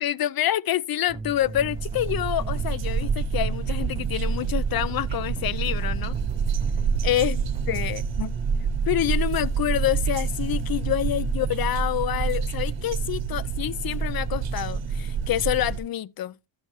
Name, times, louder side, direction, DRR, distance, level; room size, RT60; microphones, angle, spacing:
voice 1, 0.0-6.1 7.0-7.4 7.7-8.3 8.9-16.4, left 12 dB, 50° left, 0.5 m, -27 dB
sound 1, 1.1-8.0, right 3 dB, 15° right, 0.4 m, -39 dB
sound 2, 1.3-15.8, right 6 dB, 65° right, 1.1 m, -27 dB
12.5 x 6.5 x 3.1 m
cardioid pair, 90°, 48 cm